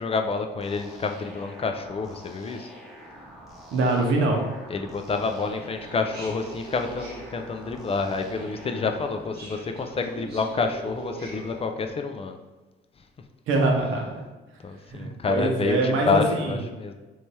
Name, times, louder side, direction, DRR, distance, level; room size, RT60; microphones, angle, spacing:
voice 1, 0.0-2.7 4.7-12.4 14.6-16.9, left 4 dB, 30° left, 5 dB, 0.3 m, -28 dB
sound 1, 0.6-9.1, equal, ahead, 0.8 m, -46 dB
voice 2, 3.7-4.4 13.5-14.1 14.9-16.6, right 2 dB, 85° right, 1 dB, 0.7 m, -24 dB
sound 2, 5.1-11.6, right 3 dB, 55° right, 1.0 m, -43 dB
3.3 x 3.1 x 2.8 m, 1.2 s
cardioid pair, 90°, 20 cm